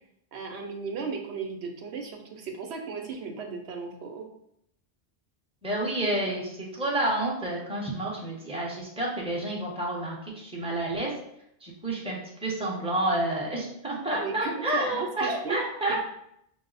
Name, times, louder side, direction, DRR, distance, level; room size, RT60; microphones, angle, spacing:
voice 1, 0.3-4.3 14.1-15.6 15.9-16.0, right 5 dB, 80° right, 3 dB, 1.0 m, -35 dB
voice 2, 5.6-11.1 11.6-16.0, right 1 dB, 5° right, -3 dB, 0.9 m, -29 dB
5.8 x 2.0 x 4.0 m, 0.73 s
omnidirectional pair, 1.1 m